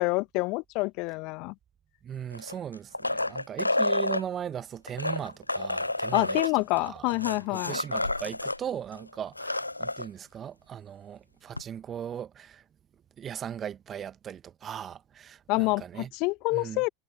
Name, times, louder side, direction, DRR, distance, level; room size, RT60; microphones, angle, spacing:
voice 1, 0.0-1.5 6.1-7.8 15.5-16.9, left 26 dB, 50° left, 1.1 m, -27 dB
voice 2, 2.0-7.1 7.5-12.6 13.2-16.1 16.5-16.8, right 9 dB, 30° right, 1.3 m, -38 dB
sound 1, 2.3-4.2 4.9-8.6 8.9-9.0 9.3-10.1 11.6-11.7, left 2 dB, 90° left, 0.7 m, -29 dB
figure-of-eight pair, 80°, 0 cm